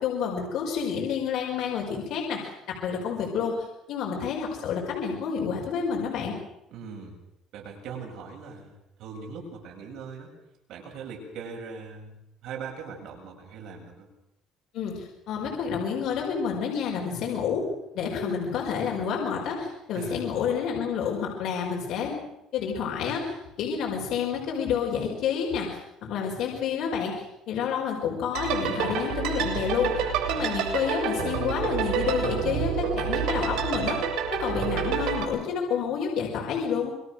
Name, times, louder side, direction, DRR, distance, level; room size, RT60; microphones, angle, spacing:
voice 1, 0.0-6.4 14.7-22.1 22.5-34.0 34.3-36.9, left 7 dB, 60° left, -1 dB, 5.2 m, -29 dB
voice 2, 6.7-7.2 7.5-10.3 10.7-12.1 12.4-14.1 19.9-20.2, right 5 dB, 60° right, 0 dB, 7.8 m, -40 dB
sound 1, 28.3-35.2, right 7 dB, 85° right, 7.0 m, -28 dB
27.0 x 23.0 x 6.5 m, 0.85 s
cardioid pair, 165°, 0 cm